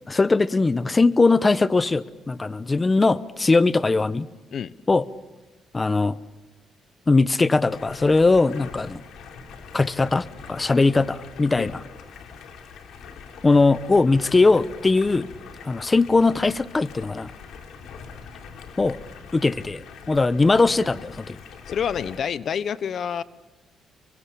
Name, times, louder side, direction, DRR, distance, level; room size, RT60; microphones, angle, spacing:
voice 1, 0.1-4.3 4.9-5.1 5.7-6.2 7.1-9.0 9.7-11.8 13.4-15.3 15.6-17.3 18.8-19.0 19.3-21.4, left 3 dB, 25° left, 17 dB, 0.9 m, -20 dB
Stream, 7.7-22.2, left 6 dB, 75° left, 3.6 m, -43 dB
voice 2, 21.7-23.2, left 8 dB, 60° left, 17 dB, 0.9 m, -27 dB
29.5 x 23.5 x 8.5 m, 1.1 s
cardioid pair, 90°, 0 cm